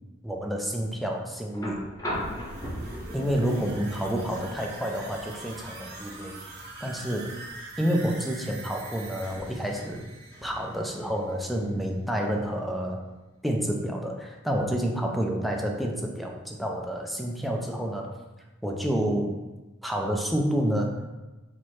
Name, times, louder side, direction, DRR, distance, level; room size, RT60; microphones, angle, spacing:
voice 1, 0.2-1.9 3.1-7.5 7.8-10.0 10.4-13.0 13.4-18.1 18.6-19.4 19.8-21.1, equal, ahead, 1 dB, 0.4 m, -29 dB
sound 1, 1.5-9.6 11.0-11.1, equal, 15° left, 0.8 m, -40 dB
sound 2, 2.1-11.8 12.1-12.2, right 2 dB, 55° right, 0.8 m, -43 dB
4.6 x 2.1 x 4.2 m, 1.1 s
head